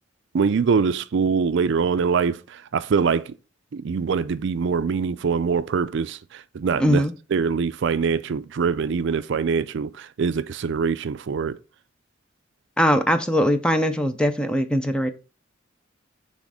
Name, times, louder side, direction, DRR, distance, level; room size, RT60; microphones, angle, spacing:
voice 1, 0.3-3.3 3.7-7.0 7.3-11.6, right 5 dB, 60° right, 0.4 m, -23 dB
voice 2, 6.8-7.1 12.8-15.1, equal, 5° left, 0.5 m, -21 dB
6.2 x 3.6 x 4.8 m
head